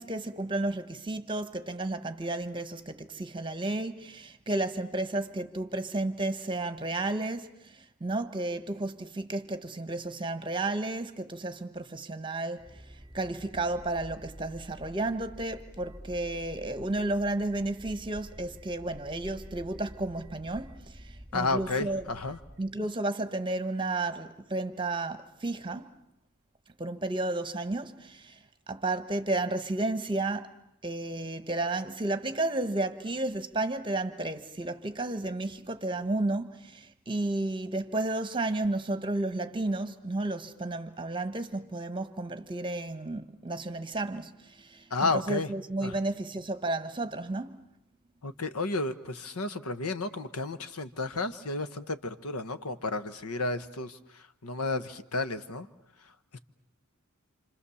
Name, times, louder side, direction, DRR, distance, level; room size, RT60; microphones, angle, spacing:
voice 1, 0.0-12.7 13.1-21.0 21.3-22.1 22.6-25.9 26.8-28.3 28.7-30.5 30.8-47.6, right 2 dB, 20° right, 1.2 m, -32 dB
sound 1, 12.6-22.6, equal, 5° right, 3.1 m, -49 dB
voice 2, 21.3-22.4 44.9-45.5 45.8-46.0 48.2-55.7 56.3-56.4, left 3 dB, 80° left, 1.2 m, -32 dB
29.0 x 26.5 x 7.1 m
head